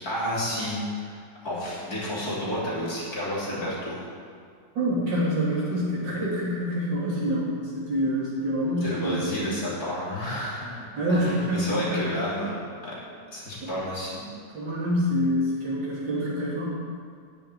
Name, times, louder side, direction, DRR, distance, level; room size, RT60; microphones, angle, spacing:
voice 1, 0.0-4.0 8.8-10.8 11.1-13.0 13.3-14.2, equal, 55° left, -7 dB, 3.6 m, -31 dB
voice 2, 4.8-9.3 11.0-12.0 13.6-13.7 14.5-16.7, equal, 90° right, -7 dB, 3.7 m, -26 dB
9.9 x 7.2 x 9.3 m, 2.2 s
omnidirectional pair, 1.9 m